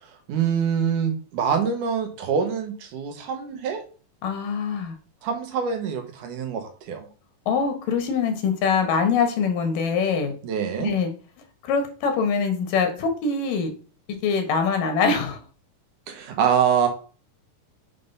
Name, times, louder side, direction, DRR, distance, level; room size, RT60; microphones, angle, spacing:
voice 1, 0.0-3.8 5.2-7.1 10.4-10.9 16.1-16.9, right 7 dB, 75° right, 5 dB, 2.7 m, -25 dB
voice 2, 4.2-5.0 7.5-10.3 10.8-11.1 11.6-13.7 14.2-15.4, left 5 dB, 85° left, 5 dB, 3.1 m, -23 dB
7.5 x 3.9 x 5.4 m, 0.38 s
omnidirectional pair, 3.8 m